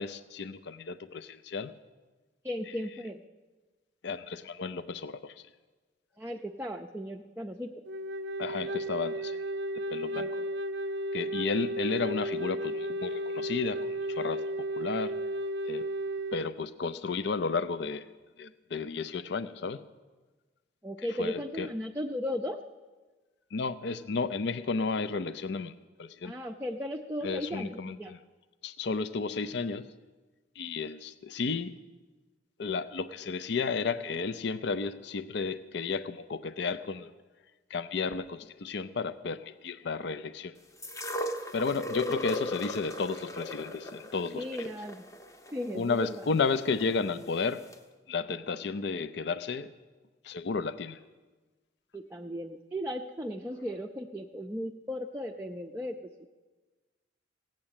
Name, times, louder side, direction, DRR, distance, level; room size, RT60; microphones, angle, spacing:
voice 1, 0.0-1.7 2.7-2.9 4.0-5.4 8.4-9.4 9.7-10.3 11.1-15.2 15.6-15.9 16.3-18.1 18.4-19.8 21.2-21.7 23.5-25.7 26.0-26.3 27.2-28.2 28.6-29.8 30.6-31.7 32.6-37.1 37.7-40.5 41.5-44.7 45.7-47.7 48.1-49.7 50.2-51.0, left 4 dB, 60° left, 14 dB, 0.5 m, -33 dB
voice 2, 2.4-3.2 6.2-7.7 10.1-10.5 20.8-22.6 26.2-28.1 44.3-45.0 45.5-46.1 51.9-56.3, left 1 dB, 10° right, 2 dB, 0.5 m, -36 dB
Wind instrument woodwind instrument, 7.9-16.5, right 1 dB, 65° right, 0.5 m, -34 dB
sound 1, 40.8-46.9 47.7-47.8, left 1 dB, 15° left, 0.8 m, -37 dB
16.5 x 7.5 x 8.8 m, 1.3 s
head